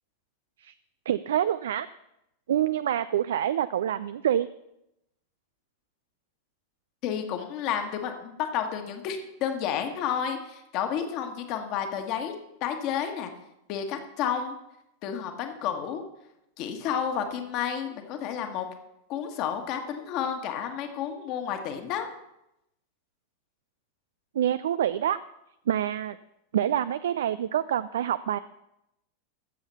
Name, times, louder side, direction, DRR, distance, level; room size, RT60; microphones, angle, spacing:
voice 1, 1.1-1.9 2.5-4.5 24.3-25.2 25.7-26.2 26.5-28.4, right 10 dB, 60° right, 15 dB, 0.3 m, -26 dB
voice 2, 7.0-12.3 12.6-13.3 13.7-14.6 15.0-16.0 16.6-18.7 19.1-22.1, left 8 dB, 40° left, 6 dB, 1.5 m, -31 dB
15.0 x 7.2 x 5.7 m, 0.86 s
figure-of-eight pair, 90°, 0 cm